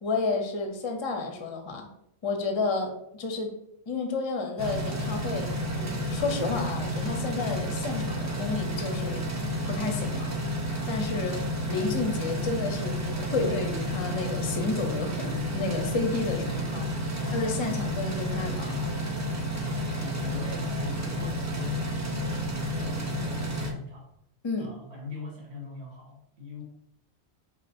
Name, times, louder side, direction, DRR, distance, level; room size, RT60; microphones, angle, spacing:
voice 1, 0.0-1.9 2.2-3.5 3.9-10.3 10.9-11.4 11.7-19.0 24.4-24.7, left 3 dB, 35° left, 5 dB, 0.5 m, -31 dB
sound 1, 4.6-23.7, equal, 25° right, 0.4 m, -31 dB
voice 2, 16.4-16.7 17.2-17.8 19.6-24.1 24.6-26.6, left 3 dB, 70° right, -2 dB, 1.5 m, -41 dB
4.9 x 2.1 x 4.3 m, 0.77 s
omnidirectional pair, 1.1 m